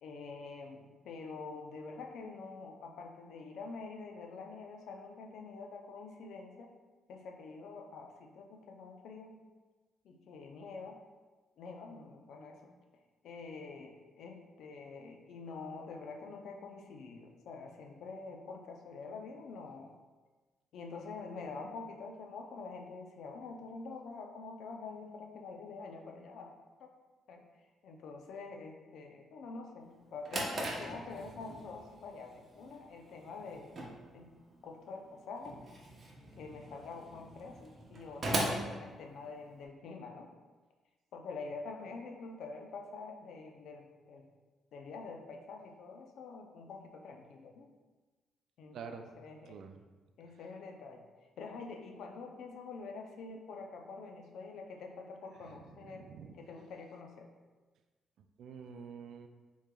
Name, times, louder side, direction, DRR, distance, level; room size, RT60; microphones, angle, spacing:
voice 1, 0.0-6.7 7.1-9.4 10.0-11.0 11.6-12.7 13.2-19.9 20.7-26.9 27.3-27.4 27.8-33.7 34.1-34.3 34.6-35.6 36.4-40.3 41.1-44.3 44.7-47.7 48.6-49.6 50.2-51.0 51.4-57.3, left 4 dB, 75° left, 3 dB, 0.5 m, -46 dB
Drawer open or close, 29.9-39.6, right 1 dB, 40° right, 0.7 m, -40 dB
voice 2, 48.7-49.1 49.5-49.8 55.4-56.3 58.2-59.3, right 6 dB, 70° right, 7 dB, 0.3 m, -48 dB
5.0 x 3.1 x 2.2 m, 1.3 s
cardioid pair, 90°, 0 cm